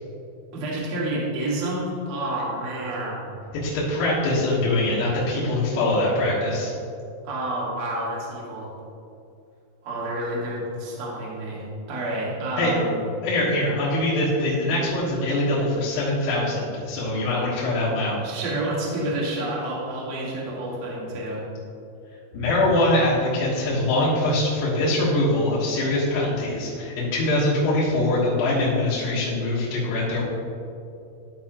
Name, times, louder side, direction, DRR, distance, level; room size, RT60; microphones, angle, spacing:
voice 1, 0.5-3.3 7.2-8.7 9.8-13.0 18.2-21.4, right 1 dB, 55° right, -6 dB, 2.0 m, -29 dB
voice 2, 3.5-6.7 12.6-12.7 13.2-18.2 22.3-30.3, left 1 dB, 80° left, -8 dB, 3.9 m, -23 dB
14.0 x 5.0 x 3.0 m, 2.7 s
omnidirectional pair, 5.4 m